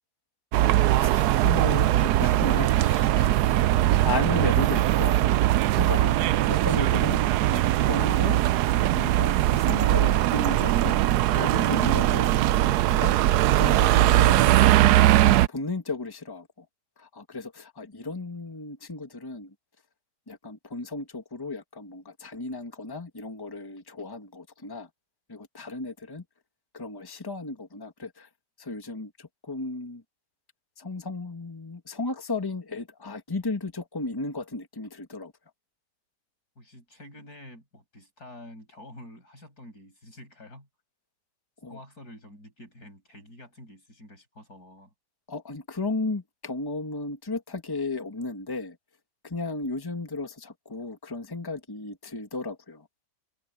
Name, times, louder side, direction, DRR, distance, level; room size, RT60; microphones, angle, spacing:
sound 1, 0.5-15.5, right 14 dB, 75° right, 1.1 m, -21 dB
voice 1, 0.9-5.2 5.7-6.2 6.5-7.2 7.5-8.4 8.9-11.0 11.2-12.5 13.0-13.2 13.5-14.5 15.5-16.6 17.0-19.5 20.3-24.9 25.3-26.2 26.7-28.3 28.6-30.0 30.8-35.3 41.6-41.8 45.3-48.8 49.2-52.9, left 3 dB, 15° left, 1.7 m, -34 dB
voice 2, 5.9-6.3 36.6-40.7 41.7-44.9, left 1 dB, 60° left, 8.6 m, -47 dB
omnidirectional pair, 1.8 m